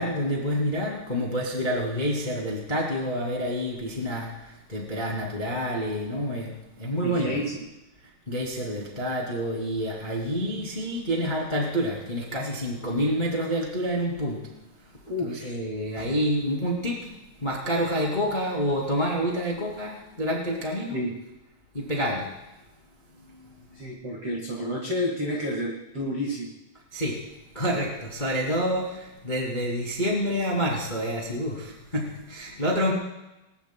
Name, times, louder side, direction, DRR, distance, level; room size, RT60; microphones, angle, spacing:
voice 1, 0.0-7.4 8.3-14.4 15.2-17.1 17.4-21.0 21.7-22.3 23.4-23.5 26.9-27.2 27.5-32.9, equal, 40° left, -2 dB, 0.6 m, -28 dB
voice 2, 7.0-7.6 10.4-10.7 15.1-15.6 20.9-21.1 23.7-26.5, left 1 dB, 75° right, -1 dB, 1.3 m, -30 dB
22.0 x 20.0 x 2.2 m, 0.98 s
omnidirectional pair, 5.7 m